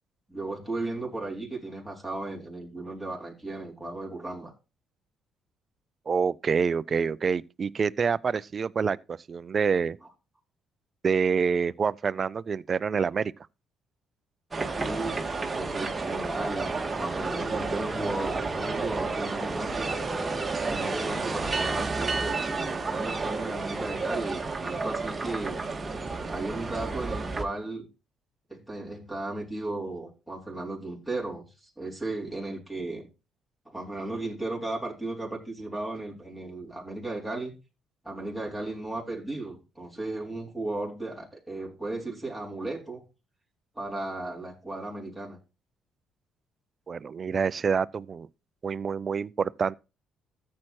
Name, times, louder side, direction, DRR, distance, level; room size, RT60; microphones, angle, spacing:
voice 1, 0.3-4.5 10.0-10.1 14.7-20.0 20.6-25.7 26.3-27.9 28.5-33.1 33.7-37.5 38.0-43.0 43.8-45.4, right 2 dB, ahead, 4.1 m, -35 dB
voice 2, 6.1-10.0 11.0-13.3 46.9-48.3 48.6-49.7, right 6 dB, 45° right, 0.4 m, -27 dB
sound 1, 14.5-27.4, right 3 dB, 25° right, 1.7 m, -31 dB
14.0 x 7.5 x 3.1 m
hypercardioid pair, 50°, 0 cm